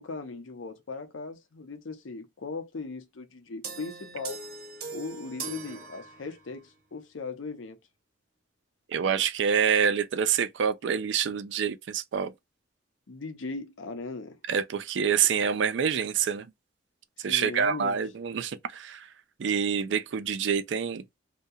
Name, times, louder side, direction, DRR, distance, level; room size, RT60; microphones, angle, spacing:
voice 1, 0.0-4.4 4.9-7.8 13.1-14.4 17.2-17.9, left 3 dB, 85° left, 0.6 m, -38 dB
sound 1, 3.6-6.6, right 4 dB, 55° right, 0.7 m, -40 dB
voice 2, 8.9-12.3 14.5-16.5 17.2-19.1 19.4-21.0, right 7 dB, 70° right, 0.4 m, -27 dB
2.7 x 2.1 x 2.2 m
head